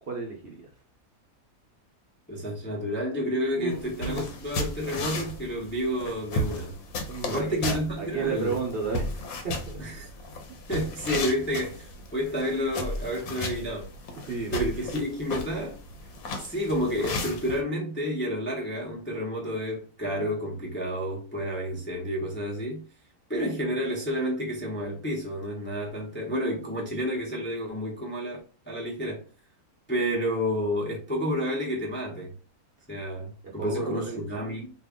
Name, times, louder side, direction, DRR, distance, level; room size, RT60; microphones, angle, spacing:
voice 1, 0.0-0.7 3.5-3.8 4.0-4.2 7.1-9.8 14.2-14.7 33.6-34.2, right 4 dB, 50° right, 0.8 m, -33 dB
voice 2, 2.3-6.8 7.2-8.6 9.8-10.1 10.7-13.9 14.5-15.8 16.4-22.8 23.3-29.2 29.9-32.3 32.9-34.7, equal, 10° left, 0.6 m, -30 dB
sound 1, 3.7-17.6, left 1 dB, 85° left, 1.2 m, -35 dB
2.9 x 2.5 x 3.5 m
omnidirectional pair, 1.5 m